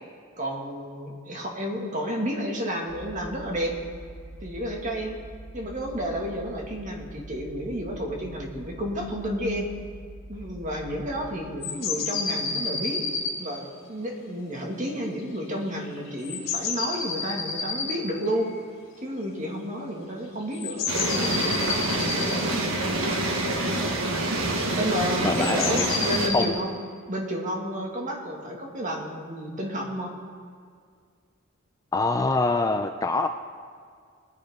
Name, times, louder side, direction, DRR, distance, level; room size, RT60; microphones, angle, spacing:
voice 1, 0.4-3.8 4.4-5.2 5.5-9.7 10.3-13.0 13.4-18.6 19.0-21.8 22.1-22.5 24.8-26.8 27.1-30.2, equal, 40° right, 0 dB, 1.9 m, -31 dB
sound 1, 2.9-11.3, right 1 dB, 60° right, 1.6 m, -44 dB
sound 2, 11.6-13.4 15.8-18.0 18.6-18.7 20.5-22.4 25.3-26.5, left 5 dB, 70° left, 2.9 m, -30 dB
sound 3, 20.9-26.3, right 1 dB, 75° right, 1.4 m, -26 dB
voice 2, 25.2-25.8 26.3-26.4 31.9-33.3, left 3 dB, 15° left, 6 dB, 0.3 m, -24 dB
20.0 x 9.3 x 3.7 m, 2.1 s
head